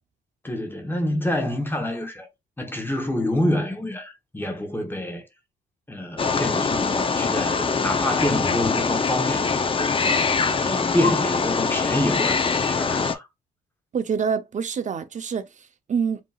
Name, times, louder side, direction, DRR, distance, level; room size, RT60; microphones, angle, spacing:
voice 1, 0.4-2.3 2.6-5.3 5.9-10.3 10.6-13.3, left 1 dB, 10° left, 1.1 m, -27 dB
Wild animals, 6.2-13.1, left 4 dB, 25° left, 0.6 m, -23 dB
voice 2, 13.9-16.2, right 6 dB, 40° right, 0.7 m, -26 dB
5.2 x 2.9 x 2.4 m
cardioid pair, 90°, 20 cm